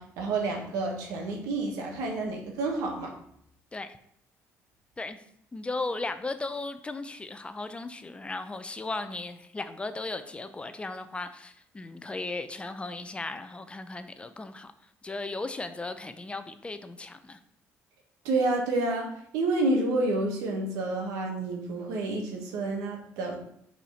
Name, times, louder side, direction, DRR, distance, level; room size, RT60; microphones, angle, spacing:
voice 1, 0.0-3.2 18.2-23.4, right 2 dB, 90° right, 1 dB, 1.5 m, -29 dB
voice 2, 5.5-17.4, left 3 dB, 20° left, 10 dB, 0.6 m, -36 dB
5.4 x 4.3 x 5.6 m, 0.71 s
cardioid pair, 90°, 6 cm